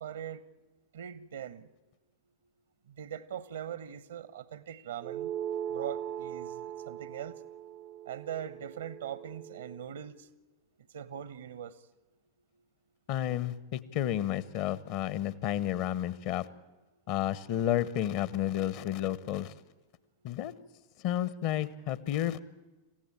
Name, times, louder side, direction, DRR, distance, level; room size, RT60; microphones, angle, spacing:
voice 1, 0.0-0.4 0.9-1.7 2.9-5.3 5.7-7.4 8.1-10.3 10.9-11.7, right 9 dB, 65° right, 1.0 m, -41 dB
sound 1, 5.0-9.8, right 10 dB, 35° right, 0.7 m, -39 dB
voice 2, 13.1-16.5 17.1-19.5 20.2-20.5 21.0-22.4, left 12 dB, 45° left, 1.0 m, -31 dB
27.0 x 15.5 x 8.9 m
figure-of-eight pair, 90°, 0 cm